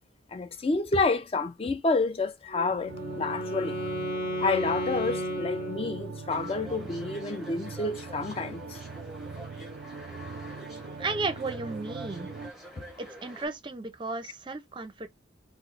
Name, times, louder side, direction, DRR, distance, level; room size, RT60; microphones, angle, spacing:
voice 1, 0.3-3.9 4.4-8.8, left 3 dB, 30° left, 0.4 m, -29 dB
Wind instrument woodwind instrument, 2.5-6.4, equal, 50° left, 0.9 m, -34 dB
sound 1, 2.9-12.5, right 4 dB, 85° right, 0.3 m, -41 dB
sound 2, 6.3-13.5, equal, ahead, 0.8 m, -47 dB
voice 2, 10.6-12.3 13.0-15.1, right 3 dB, 25° right, 0.5 m, -34 dB
3.1 x 2.0 x 3.8 m
head